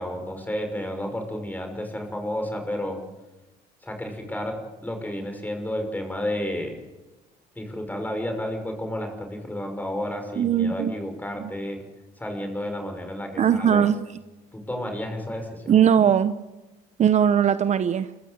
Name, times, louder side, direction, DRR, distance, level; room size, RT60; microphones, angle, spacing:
voice 1, 0.0-3.0 3.8-6.8 7.6-11.8 12.2-13.9 14.5-15.8, left 1 dB, 10° left, 5 dB, 5.8 m, -31 dB
voice 2, 10.4-10.9 11.4-11.5 13.4-14.0 15.7-16.4 17.0-18.1, right 8 dB, 45° right, 12 dB, 0.8 m, -20 dB
27.0 x 15.0 x 8.2 m, 1.1 s
cardioid pair, 110°, 17 cm